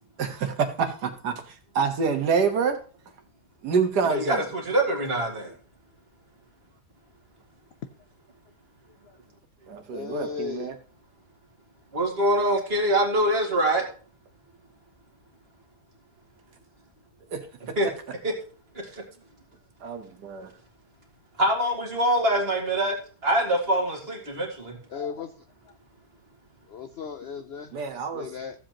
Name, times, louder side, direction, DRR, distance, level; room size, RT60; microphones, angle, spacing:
voice 1, 0.2-2.8 3.6-4.4 9.7-10.8 17.3-17.8 19.8-20.5 27.7-28.3, right 5 dB, 80° right, 1.8 m, -27 dB
voice 2, 4.1-5.5 11.9-13.9 17.8-17.9 18.2-18.3 21.4-24.8, right 1 dB, 35° right, 2.2 m, -24 dB
voice 3, 9.9-10.7 24.9-25.3 26.7-27.7 28.1-28.5, left 6 dB, 70° left, 0.6 m, -35 dB
14.5 x 7.6 x 2.9 m
omnidirectional pair, 1.7 m